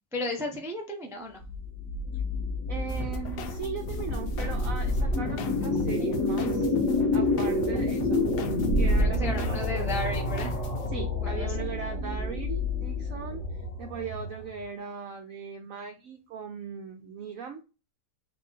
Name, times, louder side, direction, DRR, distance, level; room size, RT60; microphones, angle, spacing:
voice 1, 0.1-1.4 9.0-10.6 11.2-11.6, left 1 dB, 5° right, 1 dB, 0.3 m, -34 dB
sound 1, 1.4-14.6, left 2 dB, 45° left, 1.6 m, -28 dB
voice 2, 2.7-6.7 7.1-8.2 8.8-9.9 10.9-17.6, right 6 dB, 65° right, 4 dB, 0.9 m, -38 dB
sound 2, 2.9-10.9, left 1 dB, 70° left, 1.3 m, -39 dB
4.2 x 2.7 x 4.4 m, 0.30 s
omnidirectional pair, 1.9 m